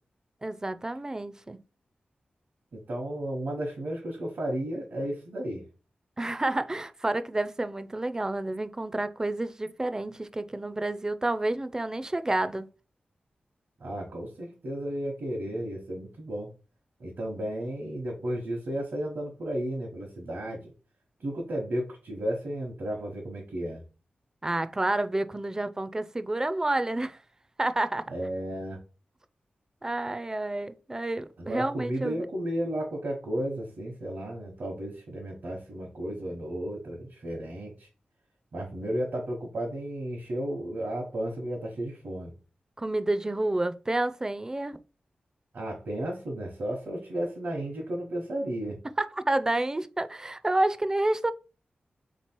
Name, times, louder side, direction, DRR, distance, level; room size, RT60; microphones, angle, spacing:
voice 1, 0.4-1.6 6.2-12.7 24.4-27.2 27.6-28.1 29.8-32.3 42.8-44.8 49.0-51.3, right 2 dB, 20° right, 0.3 m, -29 dB
voice 2, 2.7-5.6 13.8-16.5 17.0-20.7 21.2-23.8 28.1-28.8 31.4-37.9 38.5-42.3 45.5-48.8, right 1 dB, 75° right, 1.1 m, -33 dB
3.6 x 3.0 x 4.4 m
wide cardioid pair, 80°, 3 cm